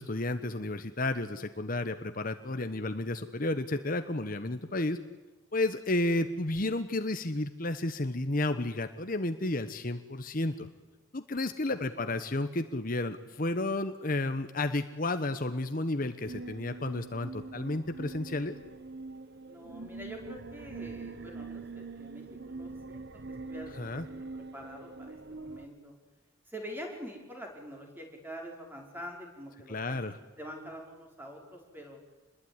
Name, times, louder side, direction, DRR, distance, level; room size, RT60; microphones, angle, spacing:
voice 1, 0.0-5.0 5.5-10.7 11.1-18.6 23.7-24.1 29.7-30.2, left 2 dB, 45° left, 9 dB, 1.1 m, -32 dB
sound 1, 16.2-25.7, right 3 dB, 55° right, 1.0 m, -44 dB
voice 2, 19.5-23.1 23.4-25.9 26.5-30.0 30.4-32.0, equal, 10° right, 1 dB, 5.2 m, -45 dB
27.0 x 21.0 x 9.8 m, 1.2 s
head